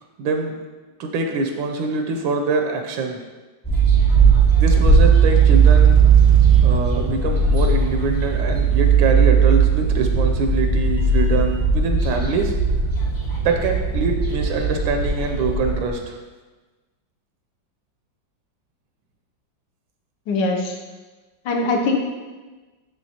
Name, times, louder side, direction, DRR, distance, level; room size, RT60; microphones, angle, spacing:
voice 1, 0.2-0.6 1.0-3.2 4.6-6.0 6.6-12.6 13.4-16.2, right 4 dB, 80° right, 3 dB, 1.3 m, -24 dB
sound 1, 3.6-15.9, right 5 dB, 30° left, 0.4 m, -17 dB
voice 2, 20.3-20.7 21.5-22.0, left 3 dB, 70° left, 2 dB, 1.3 m, -21 dB
10.0 x 3.5 x 2.8 m, 1.3 s
omnidirectional pair, 2.1 m